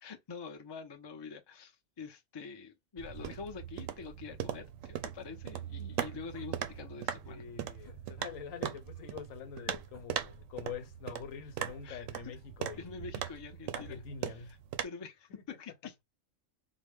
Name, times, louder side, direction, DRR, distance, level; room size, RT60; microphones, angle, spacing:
voice 1, 0.0-7.4 11.8-12.3 12.8-14.0 14.3-16.0, left 5 dB, 35° left, 0.4 m, -46 dB
sound 1, 3.0-14.8, right 10 dB, 80° right, 1.0 m, -40 dB
sound 2, 6.3-6.6 7.8-8.0 9.9-10.3 11.6-12.0, left 1 dB, 15° left, 0.9 m, -59 dB
voice 2, 7.2-13.0 13.7-14.6 15.3-15.4, left 7 dB, 85° left, 1.1 m, -45 dB
4.0 x 2.1 x 3.5 m
omnidirectional pair, 1.4 m